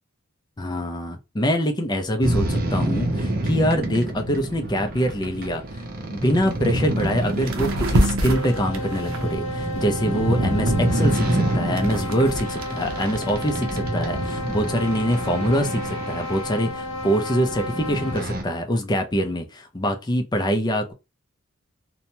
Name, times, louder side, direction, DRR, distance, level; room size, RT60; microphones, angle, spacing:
voice 1, 0.6-5.6 6.1-20.9, equal, 20° left, 0.5 m, -24 dB
sound 1, 2.2-18.4, right 1 dB, 45° right, 0.6 m, -27 dB
sound 2, 6.5-6.6 7.0-7.2 7.5-10.1 10.7-13.2, right 1 dB, 90° right, 0.6 m, -26 dB
sound 3, 8.0-18.3, left 1 dB, 65° left, 0.7 m, -33 dB
2.8 x 2.2 x 2.7 m
head